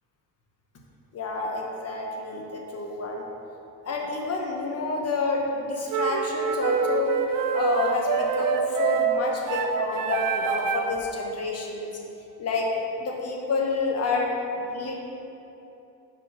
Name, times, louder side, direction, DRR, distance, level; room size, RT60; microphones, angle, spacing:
voice 1, 1.1-3.2 3.8-7.2 7.5-11.9 12.4-12.7 13.0-15.0, left 3 dB, 40° left, -1 dB, 0.9 m, -28 dB
sound 1, 5.9-11.0, right 7 dB, 65° right, 0.5 m, -26 dB
4.9 x 4.1 x 5.4 m, 2.9 s
cardioid pair, 120°, 37 cm